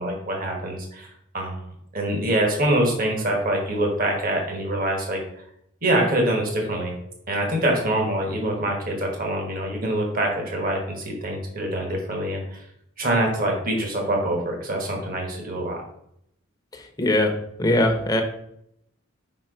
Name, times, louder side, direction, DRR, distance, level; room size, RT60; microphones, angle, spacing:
voice 1, 0.0-1.6 1.9-5.2 5.8-6.9 7.3-12.6 13.0-15.8, right 1 dB, 40° right, 0 dB, 1.3 m, -25 dB
voice 2, 17.0-17.3 17.6-18.2, left 1 dB, 20° left, 2 dB, 0.8 m, -20 dB
5.0 x 4.4 x 5.0 m, 0.75 s
head